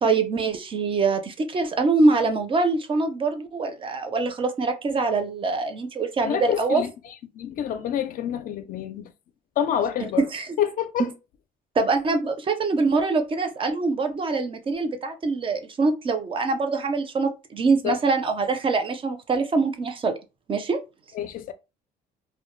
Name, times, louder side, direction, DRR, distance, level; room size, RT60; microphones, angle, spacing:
voice 1, 0.0-6.8 10.2-10.6 11.0-11.1 11.8-20.1 20.5-20.8, right 3 dB, 30° right, 0.5 m, -24 dB
voice 2, 6.2-9.1 9.6-10.2 10.6-11.1 17.8-18.0 21.2-21.5, left 9 dB, 55° left, 0.4 m, -27 dB
2.1 x 2.1 x 3.0 m
cardioid pair, 110°, 17 cm